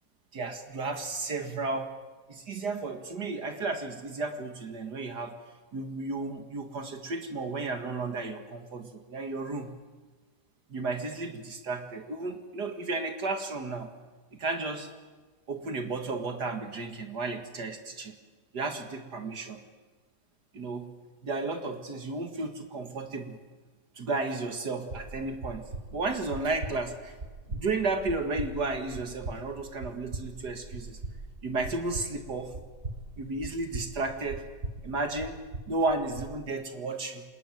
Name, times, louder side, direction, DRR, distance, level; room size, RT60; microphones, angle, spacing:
voice 1, 0.3-1.9 2.3-5.4 5.7-9.7 10.7-13.9 14.4-14.9 15.5-18.1 18.5-19.6 20.5-20.9 21.2-23.4 24.0-25.6 25.9-27.1 27.5-31.0 31.4-32.5 33.2-34.4 34.8-35.4 35.7-37.2, right 3 dB, 65° right, 6 dB, 2.5 m, -33 dB
sound 1, 24.9-36.3, right 2 dB, 35° right, 1.6 m, -41 dB
26.0 x 20.5 x 9.3 m, 1.3 s
omnidirectional pair, 1.9 m